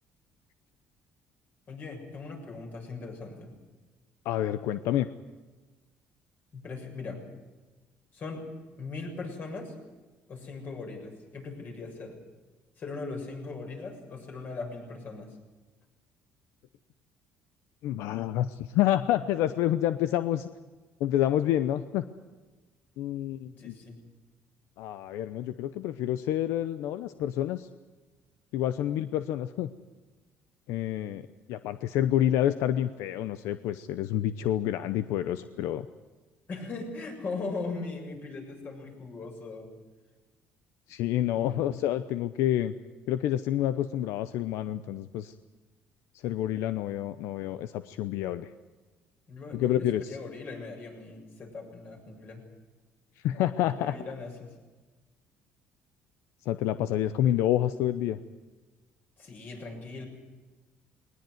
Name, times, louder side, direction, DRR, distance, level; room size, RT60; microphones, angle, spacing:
voice 1, 1.7-3.5 6.5-7.2 8.1-8.5 8.8-9.7 10.3-12.2 12.8-15.4 23.5-24.0 36.5-39.7 41.4-41.7 49.3-52.4 53.6-54.5 59.2-60.1, left 3 dB, 45° left, 3 dB, 6.9 m, -39 dB
voice 2, 4.2-5.1 17.8-20.5 21.0-22.0 23.0-23.7 24.8-27.7 28.5-29.7 30.7-35.9 40.9-42.7 43.1-45.3 46.2-48.5 49.5-50.0 53.2-53.9 56.5-58.2, left 12 dB, 85° left, 12 dB, 0.8 m, -28 dB
21.0 x 19.5 x 9.5 m, 1.2 s
cardioid pair, 125°, 5 cm